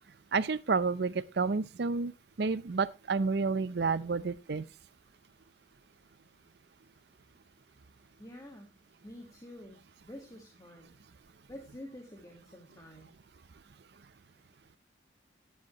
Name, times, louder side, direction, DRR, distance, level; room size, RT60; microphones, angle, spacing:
voice 1, 0.3-2.1 2.4-4.7, right 4 dB, 60° right, 0.5 m, -30 dB
voice 2, 8.2-8.7 9.0-11.0 11.5-13.1, left 1 dB, 20° left, 1.6 m, -48 dB
14.0 x 10.5 x 2.9 m
head